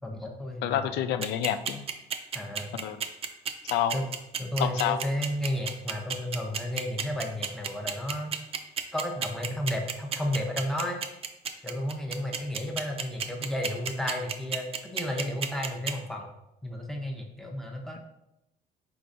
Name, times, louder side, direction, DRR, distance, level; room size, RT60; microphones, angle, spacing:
voice 1, 0.0-0.8 2.3-2.8 3.9-4.0 4.4-8.3 8.9-11.0 11.6-16.3 16.6-18.0, left 1 dB, ahead, 1 dB, 0.7 m, -32 dB
voice 2, 0.6-1.9 2.7-3.0 3.7-4.0 4.6-5.0, left 10 dB, 80° left, 11 dB, 0.4 m, -28 dB
sound 1, 1.2-15.9, right 7 dB, 35° right, 0.4 m, -31 dB
4.5 x 3.8 x 2.5 m, 0.89 s
cardioid pair, 110°, 17 cm